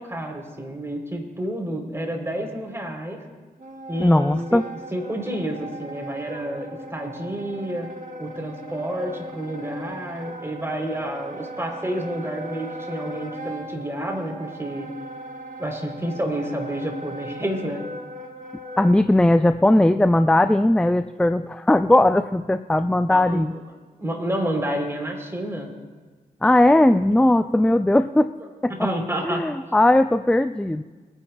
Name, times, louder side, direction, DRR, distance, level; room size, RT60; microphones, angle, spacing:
voice 1, 0.0-3.2 3.9-4.6 4.9-7.9 8.2-14.9 15.6-17.8 23.1-23.4 24.0-25.7 28.7-29.4, right 1 dB, 15° right, 2 dB, 3.5 m, -29 dB
Wind instrument woodwind instrument, 3.6-19.1, right 1 dB, 50° right, 1.7 m, -38 dB
voice 2, 4.0-4.6 18.8-23.5 26.4-28.3 28.6-28.9 29.2-30.8, left 1 dB, 5° left, 10 dB, 0.5 m, -18 dB
23.0 x 9.8 x 2.3 m, 1.4 s
supercardioid pair, 40°, 17 cm